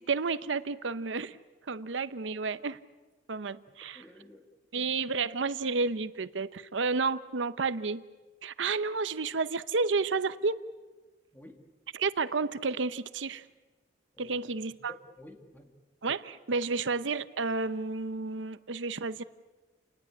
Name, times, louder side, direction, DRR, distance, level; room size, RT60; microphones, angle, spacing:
voice 1, 0.0-1.4 1.7-2.8 3.3-4.0 4.7-8.0 8.4-10.6 11.9-13.5 14.2-14.9 16.0-19.2, right 4 dB, 85° right, 14 dB, 0.8 m, -31 dB
voice 2, 3.9-4.5 11.3-11.6 14.1-14.4 14.8-15.7, left 1 dB, 10° left, 4 dB, 2.4 m, -51 dB
29.5 x 19.5 x 8.5 m, 1.2 s
head